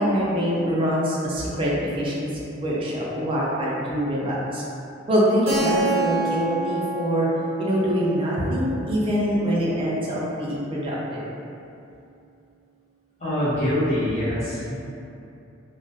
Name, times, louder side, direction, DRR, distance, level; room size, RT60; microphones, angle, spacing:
voice 1, 0.0-4.6 5.1-7.3 7.6-11.2, equal, 25° right, -6 dB, 0.4 m, -24 dB
Keyboard (musical), 5.5-10.0, right 3 dB, 90° right, 0.6 m, -29 dB
voice 2, 13.2-14.7, left 1 dB, 35° left, -12 dB, 0.8 m, -24 dB
2.2 x 2.0 x 2.7 m, 2.7 s
head